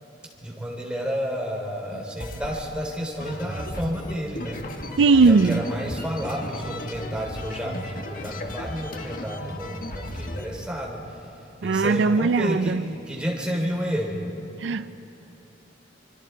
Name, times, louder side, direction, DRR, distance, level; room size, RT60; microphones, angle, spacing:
voice 1, 0.4-4.6 5.2-11.3 11.6-14.2, equal, 5° right, 3.9 m, -31 dB
sound 1, 1.9-2.6 3.2-10.5, left 1 dB, 50° left, 1.7 m, -35 dB
voice 2, 5.0-5.6 11.6-12.8 14.6-14.9, right 4 dB, 80° right, 0.5 m, -19 dB
26.0 x 25.0 x 4.6 m
head